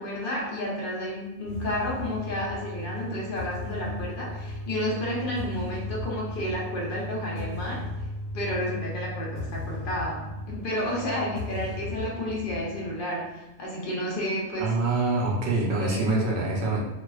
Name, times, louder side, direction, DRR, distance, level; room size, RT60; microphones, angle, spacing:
voice 1, 0.0-7.9 8.3-14.7 15.8-16.0, equal, 55° left, -3 dB, 0.8 m, -31 dB
sound 1, 1.4-13.0, left 2 dB, 80° left, 1.0 m, -36 dB
voice 2, 14.6-16.8, right 2 dB, 70° right, -2 dB, 0.8 m, -25 dB
2.4 x 2.3 x 2.3 m, 0.95 s
omnidirectional pair, 1.1 m